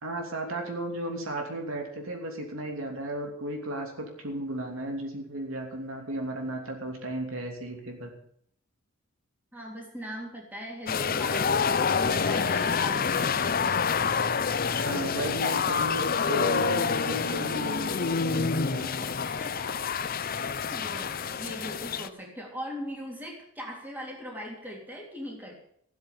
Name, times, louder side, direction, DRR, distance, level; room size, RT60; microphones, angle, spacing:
voice 1, 0.0-8.1 14.7-19.1, right 1 dB, 65° right, 2 dB, 3.1 m, -34 dB
voice 2, 9.5-14.0 19.2-19.9 20.2-21.1 21.4-25.5, equal, 10° right, -1 dB, 3.4 m, -40 dB
sound 1, 10.9-22.1, left 5 dB, 40° left, 0.6 m, -27 dB
15.5 x 8.3 x 8.5 m, 0.67 s
head